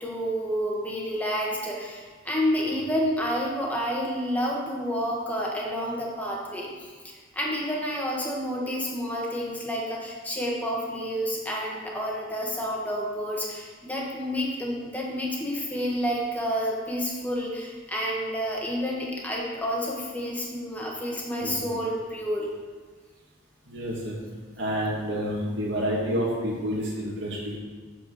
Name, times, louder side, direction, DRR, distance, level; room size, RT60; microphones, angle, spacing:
voice 1, 0.0-6.9 7.3-22.5, equal, 10° left, -3 dB, 1.5 m, -29 dB
voice 2, 21.4-21.8 23.7-24.2 24.6-27.6, equal, 70° right, -7 dB, 2.4 m, -29 dB
8.2 x 4.9 x 6.4 m, 1.4 s
head